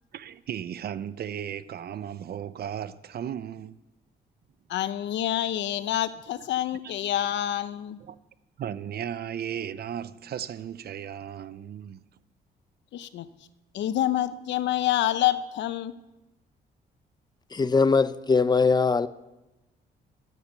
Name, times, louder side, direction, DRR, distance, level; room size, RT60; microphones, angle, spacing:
voice 1, 0.1-3.8 6.8-6.9 8.0-8.2 8.6-12.0, right 9 dB, 60° right, 0.7 m, -35 dB
voice 2, 4.7-8.0 12.9-13.3 13.7-15.9, left 12 dB, 80° left, 0.8 m, -27 dB
voice 3, 17.5-19.1, left 4 dB, 25° left, 0.6 m, -21 dB
16.0 x 9.4 x 6.7 m
cardioid pair, 95°, 18 cm